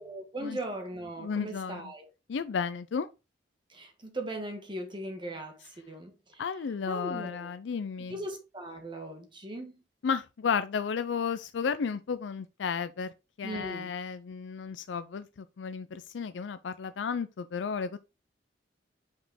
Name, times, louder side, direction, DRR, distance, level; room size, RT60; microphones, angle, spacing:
voice 1, 0.0-2.1 3.7-5.6 5.9-6.5 6.9-7.5 8.0-9.7 13.4-13.9, right 1 dB, 25° right, 1.3 m, -39 dB
voice 2, 1.2-1.9 2.3-3.1 6.4-8.2 10.0-13.1 13.4-18.0, left 6 dB, 85° left, 0.4 m, -33 dB
5.6 x 4.8 x 3.7 m
head